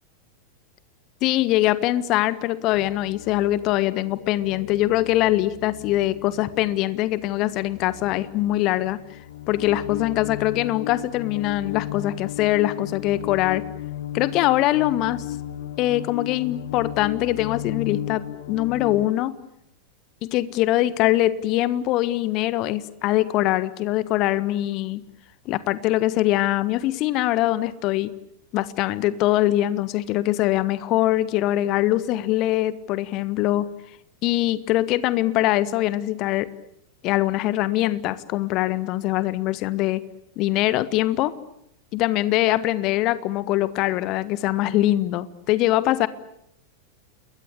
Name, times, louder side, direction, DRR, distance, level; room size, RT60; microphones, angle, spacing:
voice 1, 1.2-9.0 9.5-13.6 14.1-15.2 15.8-19.3 20.2-25.0 25.4-28.1 28.5-33.7 34.2-36.5 37.0-40.0 40.4-41.3 41.9-46.1, left 15 dB, 40° left, 16 dB, 1.5 m, -23 dB
sound 1, 2.7-19.1, left 11 dB, 60° left, 1.7 m, -35 dB
29.5 x 22.0 x 8.7 m, 0.74 s
figure-of-eight pair, 90°, 0 cm